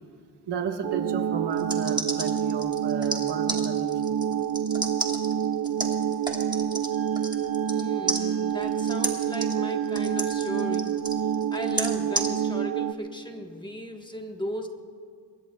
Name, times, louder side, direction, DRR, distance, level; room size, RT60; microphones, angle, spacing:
voice 1, 0.5-4.3, right 6 dB, 70° right, 4 dB, 1.4 m, -33 dB
sound 1, 0.8-12.9, right 8 dB, 50° right, 0.6 m, -27 dB
sound 2, 1.5-7.8 8.1-12.3, right 1 dB, 10° right, 1.5 m, -32 dB
Wind instrument woodwind instrument, 6.9-10.8, equal, 80° left, 5.6 m, -51 dB
voice 2, 7.7-10.9 11.5-14.7, equal, 10° left, 3 dB, 1.3 m, -36 dB
27.5 x 22.0 x 2.3 m, 2.2 s
wide cardioid pair, 125°, 42 cm